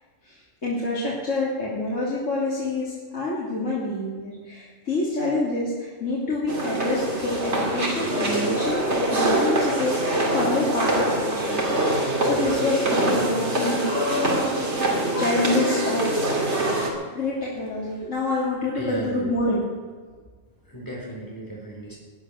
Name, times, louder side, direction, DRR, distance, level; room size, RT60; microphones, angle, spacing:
voice 1, 0.2-11.6 11.9-13.9 14.9-16.4 17.1-19.6, left 2 dB, 80° left, -7 dB, 3.3 m, -27 dB
sound 1, 6.5-16.9, right 1 dB, 60° right, 2.9 m, -24 dB
voice 2, 16.8-17.1 17.9-18.3 18.7-19.3 20.6-22.0, right 1 dB, 15° left, -2 dB, 3.9 m, -37 dB
19.0 x 10.5 x 6.5 m, 1.5 s
omnidirectional pair, 1.3 m